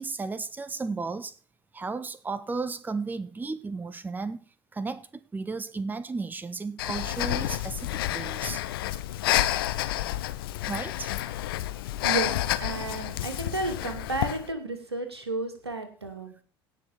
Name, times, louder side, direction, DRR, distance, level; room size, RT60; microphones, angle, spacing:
voice 1, 0.0-1.4 1.7-4.4 4.7-8.6 10.7-11.1, right 4 dB, 15° right, 0.8 m, -34 dB
Breathing, 6.8-14.5, left 14 dB, 65° left, 0.8 m, -29 dB
voice 2, 12.6-16.3, right 2 dB, 80° right, 2.5 m, -32 dB
17.5 x 6.4 x 4.4 m
figure-of-eight pair, 65°, 13 cm